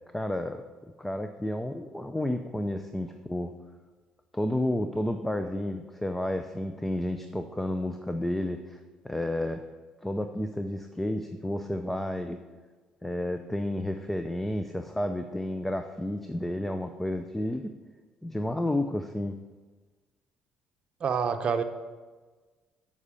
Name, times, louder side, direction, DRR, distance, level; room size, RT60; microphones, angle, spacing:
voice 1, 0.1-0.6 1.0-3.5 4.3-9.6 10.0-12.4 13.0-17.7 18.2-19.4, left 1 dB, 10° left, 7 dB, 0.5 m, -31 dB
voice 2, 21.0-21.6, right 6 dB, 50° right, 7 dB, 0.8 m, -27 dB
8.0 x 5.5 x 6.9 m, 1.3 s
cardioid pair, 95°, 2 cm